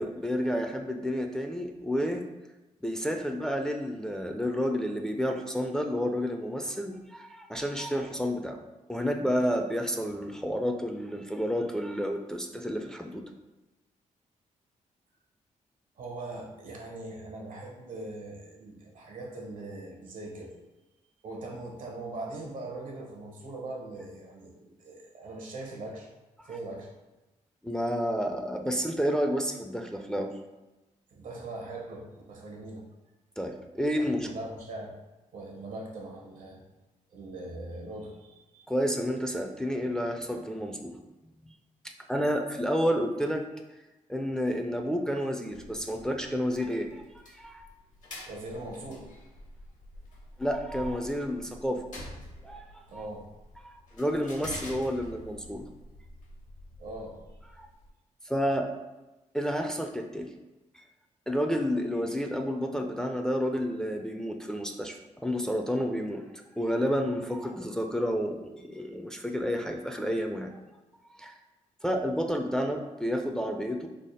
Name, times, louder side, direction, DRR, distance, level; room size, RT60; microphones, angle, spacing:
voice 1, 0.0-2.2 2.8-8.6 8.9-13.2 26.4-26.5 27.6-30.3 33.4-34.3 38.7-41.0 42.1-43.5 44.1-47.7 50.4-51.8 52.4-53.0 53.6-55.7 57.6-57.7 58.3-58.7 59.3-60.3 60.7-60.8 61.3-66.2 66.6-70.6 71.1-71.3 71.8-73.9, equal, 5° left, 4 dB, 0.3 m, -30 dB
voice 2, 16.0-20.5 21.2-26.1 26.4-26.9 31.1-32.9 33.9-34.9 35.3-36.6 37.1-38.7 48.3-49.1 52.9-53.3 56.8-57.2, right 2 dB, 80° right, 0 dB, 0.8 m, -41 dB
sound 1, 45.5-57.9, left 1 dB, 70° left, 1.1 m, -47 dB
3.4 x 2.0 x 4.0 m, 1.1 s
cardioid pair, 75°, 14 cm